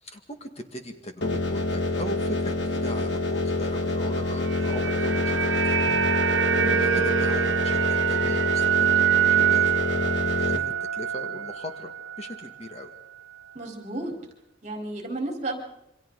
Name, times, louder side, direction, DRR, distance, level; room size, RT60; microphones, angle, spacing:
voice 1, 0.0-5.8 6.8-9.8 10.3-11.9 12.2-12.9, left 1 dB, 35° left, 5 dB, 2.1 m, -38 dB
sound 1, 1.2-10.6, left 2 dB, 65° left, 2.1 m, -27 dB
sound 2, 4.2-12.5 12.8-12.9, right 10 dB, 85° right, 0.9 m, -25 dB
voice 2, 6.5-6.9 13.5-14.1 14.6-15.6, right 2 dB, 40° right, 2 dB, 4.2 m, -33 dB
28.0 x 25.0 x 4.0 m, 0.83 s
head